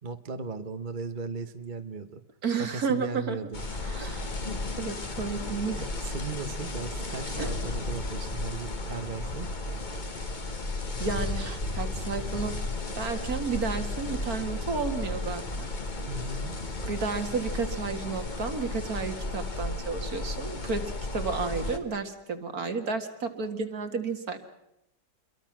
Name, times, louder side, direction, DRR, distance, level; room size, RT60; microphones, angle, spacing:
voice 1, 0.0-2.2 2.6-3.6 5.8-9.5 16.1-16.6, right 4 dB, 30° right, 8 dB, 1.1 m, -37 dB
voice 2, 2.4-3.4 3.8-4.3 4.8-5.8 7.4-7.5 11.0-12.6 13.0-15.7 16.9-24.4, right 4 dB, 55° right, 7 dB, 2.3 m, -32 dB
sound 1, 3.5-21.8, left 2 dB, 30° left, 1.5 m, -34 dB
27.5 x 23.0 x 6.1 m, 0.87 s
omnidirectional pair, 1.9 m